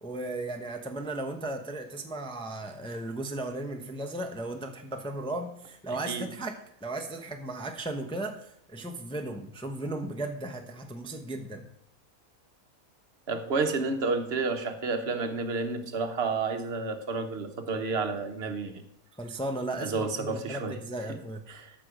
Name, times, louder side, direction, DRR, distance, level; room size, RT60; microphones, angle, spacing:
voice 1, 0.0-6.5 6.8-11.7 19.2-21.4, right 2 dB, 5° left, 4 dB, 0.7 m, -36 dB
voice 2, 5.9-6.3 13.3-18.8 19.8-20.8 21.1-21.2 21.5-21.7, right 4 dB, 50° right, 6 dB, 1.2 m, -30 dB
13.0 x 6.1 x 5.1 m, 0.74 s
omnidirectional pair, 1.5 m